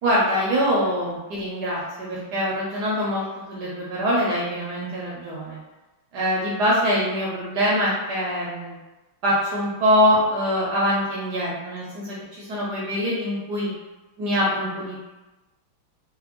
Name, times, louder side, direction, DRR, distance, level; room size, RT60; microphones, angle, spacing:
voice 1, 0.0-5.6 6.1-8.8 9.2-13.7 14.2-15.1, equal, 70° right, -5 dB, 1.0 m, -24 dB
4.0 x 2.1 x 2.9 m, 1.1 s
omnidirectional pair, 2.3 m